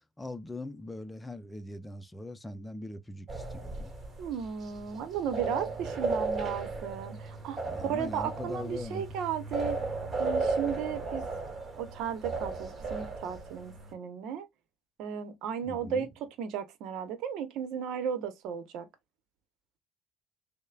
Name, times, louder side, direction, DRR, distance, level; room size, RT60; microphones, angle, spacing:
voice 1, 0.2-3.9 7.6-9.1 15.6-16.1, left 1 dB, 15° left, 0.6 m, -41 dB
sound 1, 3.3-13.9, right 3 dB, 30° right, 1.4 m, -35 dB
voice 2, 4.2-9.8 10.2-11.2 11.8-14.5 15.0-18.9, right 8 dB, 65° right, 0.9 m, -35 dB
6.3 x 2.2 x 2.3 m
hypercardioid pair, 70°, 0 cm